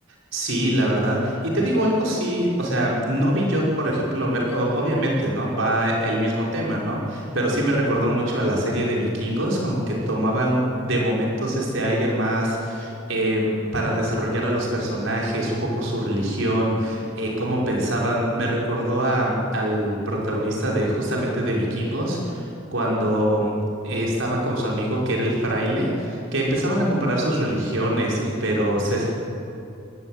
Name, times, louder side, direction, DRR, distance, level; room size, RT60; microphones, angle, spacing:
voice 1, 0.3-23.6 23.8-29.1, right 1 dB, 70° right, -3 dB, 5.8 m, -23 dB
21.5 x 17.0 x 9.4 m, 2.6 s
head